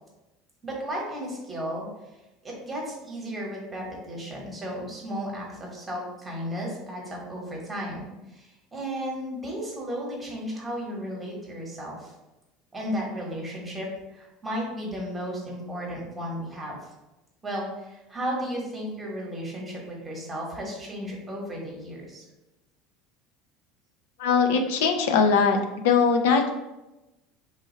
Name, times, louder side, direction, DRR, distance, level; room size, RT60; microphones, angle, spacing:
voice 1, 0.6-1.9 2.4-12.1 12.7-16.7 17.4-22.2, equal, 15° right, -3 dB, 1.1 m, -34 dB
voice 2, 24.2-25.6 25.8-26.5, left 5 dB, 90° left, 5 dB, 0.4 m, -20 dB
3.3 x 2.3 x 4.3 m, 1.0 s
supercardioid pair, 140°, 0 cm